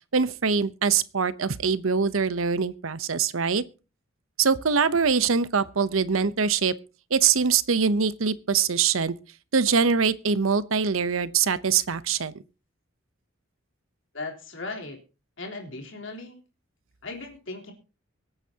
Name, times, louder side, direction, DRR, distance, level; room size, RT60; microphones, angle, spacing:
voice 1, 0.1-3.6 4.4-6.7 7.1-9.2 9.5-12.3, right 6 dB, 80° right, 0.8 m, -23 dB
voice 2, 14.1-15.0 15.4-16.4 17.0-17.7, left 3 dB, 65° left, 3.7 m, -37 dB
24.0 x 9.0 x 2.9 m
head